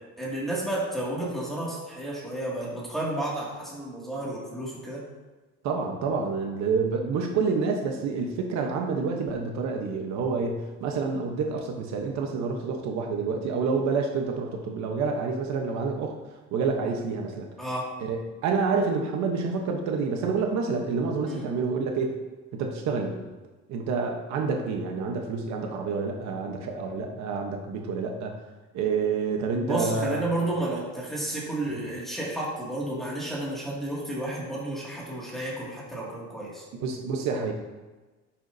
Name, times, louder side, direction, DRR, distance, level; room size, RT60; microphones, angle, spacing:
voice 1, 0.2-5.0 17.6-17.9 21.3-21.4 29.6-36.6, right 1 dB, ahead, -6 dB, 2.3 m, -31 dB
voice 2, 5.6-16.1 16.5-17.5 18.0-22.2 22.5-23.2 23.7-28.4 28.7-30.2 36.7-37.5, right 4 dB, 65° right, 2 dB, 1.1 m, -28 dB
10.5 x 7.2 x 2.7 m, 1.2 s
cardioid pair, 170°, 30 cm